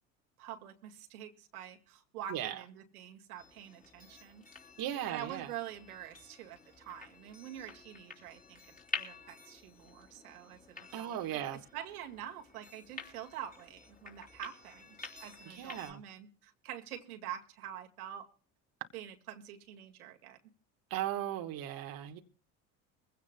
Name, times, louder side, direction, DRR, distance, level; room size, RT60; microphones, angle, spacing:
voice 1, 0.4-4.4 5.1-11.4 11.7-15.0 15.2-18.3 18.9-20.4, right 10 dB, 85° right, 2.1 m, -46 dB
sound 1, 3.4-15.9, left 3 dB, 20° left, 3.7 m, -49 dB
voice 2, 4.8-5.5 10.9-11.6 15.4-16.0 20.9-22.2, right 12 dB, 55° right, 1.4 m, -37 dB
23.0 x 16.0 x 2.2 m
hypercardioid pair, 80°, 43 cm